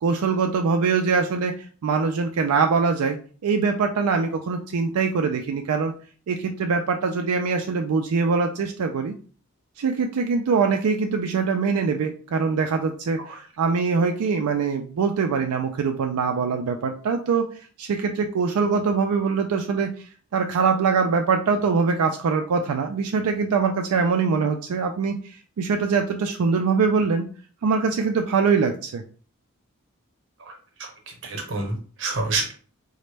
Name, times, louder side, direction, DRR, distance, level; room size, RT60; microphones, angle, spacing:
voice 1, 0.0-3.2 3.4-5.9 6.3-9.1 9.8-17.5 17.8-19.9 20.3-27.3 27.6-29.0, right 5 dB, 85° right, 4 dB, 0.4 m, -23 dB
voice 2, 30.8-32.5, right 3 dB, 55° right, 3 dB, 0.9 m, -28 dB
3.9 x 2.1 x 3.3 m, 0.41 s
head